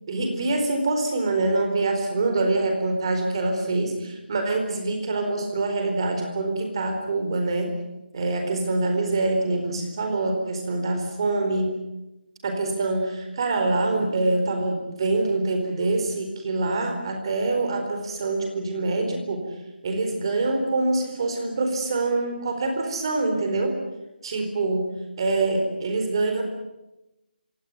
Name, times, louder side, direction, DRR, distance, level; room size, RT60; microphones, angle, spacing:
voice 1, 0.1-7.7 8.1-11.7 12.4-19.5 19.8-23.8 24.2-24.9 25.2-26.4, right 2 dB, 25° right, 4 dB, 4.3 m, -25 dB
26.5 x 17.5 x 9.4 m, 0.98 s
figure-of-eight pair, 175°, 6 cm